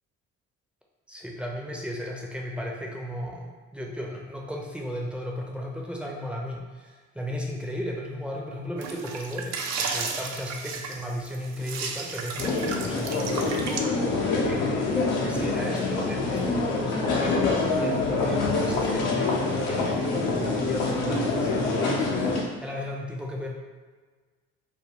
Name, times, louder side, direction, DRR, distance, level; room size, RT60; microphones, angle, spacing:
voice 1, 1.1-14.6 15.2-19.4 19.7-23.5, left 1 dB, 5° right, -2 dB, 0.6 m, -35 dB
sound 1, 8.8-13.8, right 5 dB, 45° right, 0.5 m, -34 dB
sound 2, 12.4-22.4, left 3 dB, 70° left, 0.8 m, -26 dB
2.6 x 2.2 x 3.5 m, 1.4 s
hypercardioid pair, 55°, 38 cm